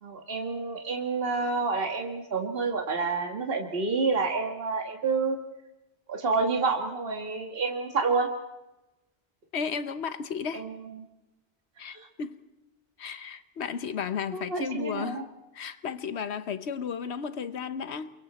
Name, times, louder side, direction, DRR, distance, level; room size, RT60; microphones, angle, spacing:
voice 1, 0.0-5.4 6.1-8.3 10.5-11.0 11.9-12.0 14.3-15.2, right 4 dB, 60° right, 1.9 m, -29 dB
voice 2, 9.5-10.7 11.8-12.4 13.0-15.3 15.5-18.1, left 6 dB, 85° left, 1.2 m, -34 dB
28.5 x 23.0 x 4.2 m
omnidirectional pair, 1.1 m